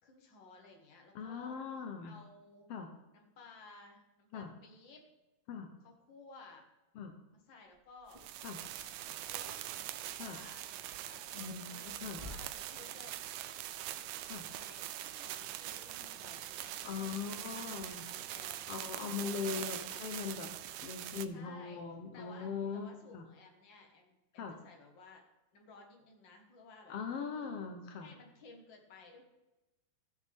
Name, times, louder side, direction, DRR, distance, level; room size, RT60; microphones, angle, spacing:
voice 1, 0.0-1.6 2.0-2.7 3.1-5.0 5.8-6.6 7.3-8.2 8.7-9.6 10.0-13.2 14.5-18.6 19.0-20.0 21.3-21.8 22.1-25.2 25.5-27.0 27.2-27.5 28.0-29.2, left 3 dB, 45° left, 2 dB, 1.7 m, -57 dB
voice 2, 1.1-2.1 2.7-2.9 4.3-4.5 5.5-5.7 6.9-7.1 8.4-8.6 10.2-10.4 11.3-12.2 14.2-14.5 16.8-18.0 18.7-20.5 20.8-23.2 24.4-24.6 26.9-28.1, left 6 dB, 80° left, 5 dB, 1.3 m, -40 dB
sound 1, 7.7-12.6, left 1 dB, 10° right, 3.5 m, -55 dB
sound 2, 8.1-21.3, right 13 dB, 85° right, 1.6 m, -43 dB
15.5 x 6.4 x 3.5 m, 1.0 s
omnidirectional pair, 3.7 m